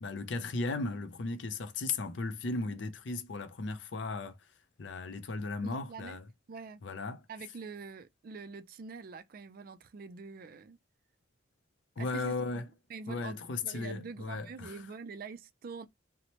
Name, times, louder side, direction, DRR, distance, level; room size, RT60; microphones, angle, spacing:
voice 1, 0.0-4.4 4.8-6.2 6.8-7.2 12.0-12.7 13.1-14.8, left 3 dB, 65° left, 0.5 m, -36 dB
voice 2, 5.6-6.2 6.5-6.8 7.3-10.8 12.0-15.9, right 4 dB, 45° right, 0.3 m, -45 dB
2.8 x 2.0 x 2.9 m
head